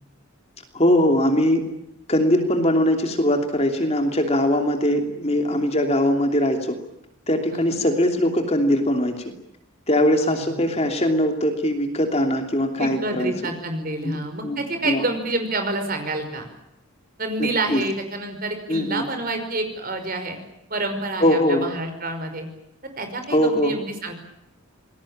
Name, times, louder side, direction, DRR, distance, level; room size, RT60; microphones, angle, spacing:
voice 1, 0.7-1.6 2.1-6.8 7.3-9.3 9.9-13.5 14.0-14.2 14.4-14.6 14.8-15.1 17.4-17.8 18.7-19.0 21.2-21.7 23.3-23.7, left 1 dB, 30° left, 4 dB, 2.9 m, -21 dB
voice 2, 12.8-16.5 17.2-20.4 20.7-22.5 23.0-24.1, right 2 dB, 40° right, 7 dB, 5.4 m, -28 dB
27.0 x 20.5 x 8.8 m, 0.85 s
head